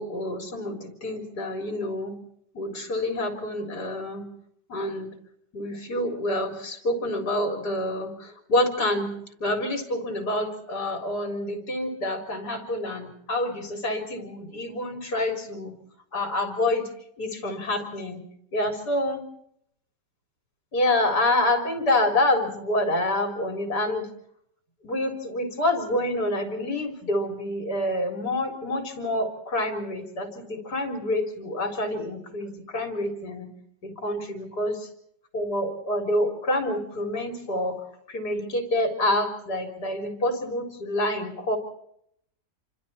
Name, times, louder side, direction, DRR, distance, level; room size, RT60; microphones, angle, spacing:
voice 1, 0.0-2.1 2.5-4.2 4.7-5.1 5.5-9.1 9.4-15.7 16.1-16.9 17.2-18.2 18.5-19.2 20.7-24.1 24.8-33.5 33.8-34.8 35.3-37.8 38.1-41.6, left 1 dB, 65° left, 5 dB, 4.3 m, -27 dB
27.5 x 25.5 x 4.3 m, 0.71 s
omnidirectional pair, 1.8 m